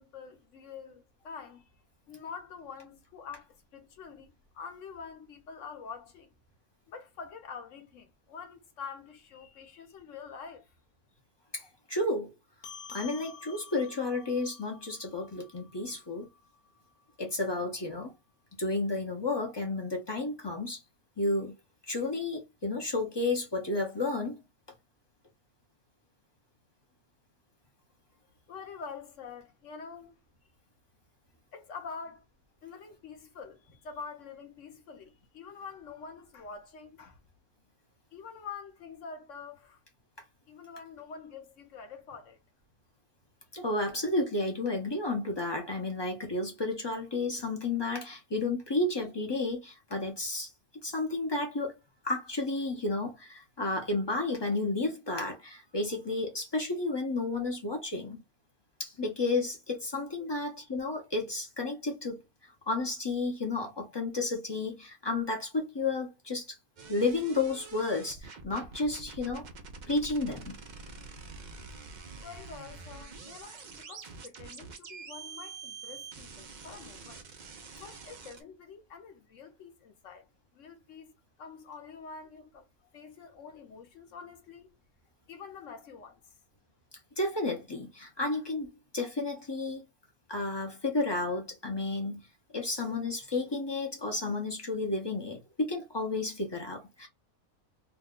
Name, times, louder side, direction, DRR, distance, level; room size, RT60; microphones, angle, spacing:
voice 1, 0.0-1.7 2.1-6.3 6.9-10.7 28.5-30.2 31.5-32.2 32.6-37.2 38.1-39.8 40.5-42.4 72.2-77.2 77.8-80.3 80.5-81.1 81.4-82.7 82.9-84.7 85.3-86.2, left 5 dB, 60° left, 0.9 m, -46 dB
voice 2, 11.5-12.3 12.9-16.3 17.2-18.1 18.6-20.8 21.2-21.6 21.9-24.4 43.5-50.5 50.8-51.7 52.0-58.2 58.8-62.2 62.7-66.5 66.9-69.5 69.9-70.5 87.2-88.7 88.9-89.8 90.3-92.2 92.5-97.1, left 2 dB, 30° left, 0.4 m, -32 dB
sound 1, 12.6-17.4, left 6 dB, 85° left, 1.1 m, -50 dB
sound 2, 66.8-78.4, right 4 dB, 75° right, 0.4 m, -46 dB
2.8 x 2.2 x 3.6 m
omnidirectional pair, 1.6 m